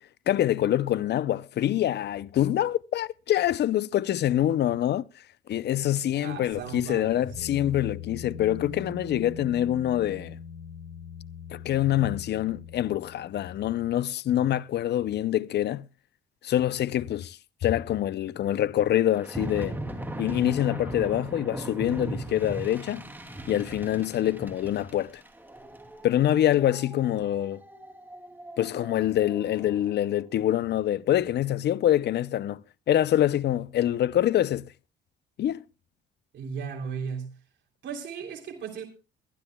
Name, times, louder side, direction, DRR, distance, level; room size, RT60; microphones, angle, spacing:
voice 1, 0.3-5.0 5.5-10.4 11.5-15.9 16.4-19.8 20.2-23.0 23.5-25.2 26.0-27.6 28.6-32.6 32.9-34.7 35.4-35.6, left 12 dB, 60° left, 0.5 m, -25 dB
voice 2, 6.2-7.3 22.4-22.7 36.3-37.3 37.8-38.8, right 6 dB, 65° right, 3.1 m, -36 dB
sound 1, 6.5-13.9, left 6 dB, 80° left, 4.6 m, -42 dB
sound 2, 19.2-29.7, right 1 dB, 10° right, 2.6 m, -39 dB
22.5 x 12.0 x 2.2 m
cardioid pair, 90°, 20 cm